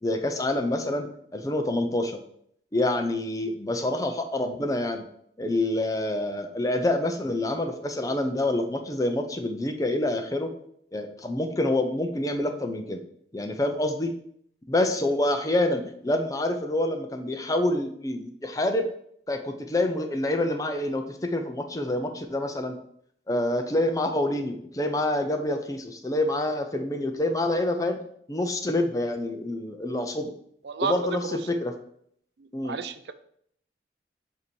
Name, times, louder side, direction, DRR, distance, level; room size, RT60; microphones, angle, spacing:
voice 1, 0.0-2.2 2.7-5.1 5.4-10.5 10.9-13.0 13.3-14.1 14.7-18.9 19.3-22.8 23.3-28.0 28.3-30.3 30.8-31.7 32.5-32.8, left 1 dB, 20° left, 6 dB, 0.5 m, -27 dB
voice 2, 32.4-33.1, right 5 dB, 75° right, 10 dB, 0.4 m, -31 dB
7.8 x 2.8 x 4.5 m, 0.67 s
head